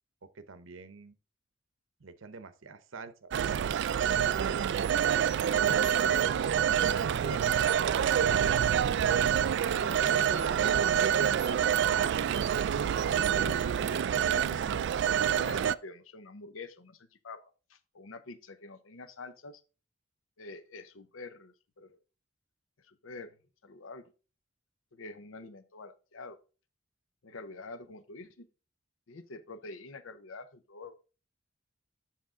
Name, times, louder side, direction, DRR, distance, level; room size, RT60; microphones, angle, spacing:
voice 1, 0.3-1.2 2.0-3.7 4.1-4.6, right 4 dB, 80° right, 0.8 m, -47 dB
Telephone, 3.3-15.7, right 8 dB, 60° right, 0.3 m, -27 dB
voice 2, 5.1-6.3 6.7-12.5 13.2-13.8 14.2-17.4 17.7-19.6 20.4-22.0 22.8-23.4 23.6-24.1 24.9-26.4 27.2-28.5 29.1-30.9, left 3 dB, 90° left, 0.7 m, -46 dB
7.6 x 5.8 x 3.7 m
head